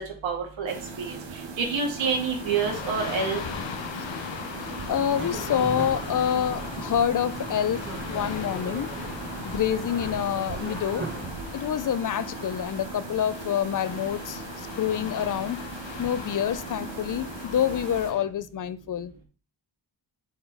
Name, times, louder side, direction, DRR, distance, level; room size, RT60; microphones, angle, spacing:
voice 1, 0.2-1.1 1.6-3.4, right 5 dB, 90° right, 1 dB, 2.4 m, -27 dB
sound 1, 0.7-18.1, right 4 dB, 70° right, 1.4 m, -39 dB
sound 2, 2.0-18.3, left 7 dB, 80° left, 1.1 m, -39 dB
voice 2, 4.9-8.9 9.4-11.1 11.5-15.6 16.0-19.1, left 9 dB, 45° left, 15 dB, 0.5 m, -27 dB
sound 3, 4.9-11.2, right 3 dB, 25° right, 1.1 m, -38 dB
7.8 x 4.2 x 4.8 m, 0.37 s
wide cardioid pair, 160°, 44 cm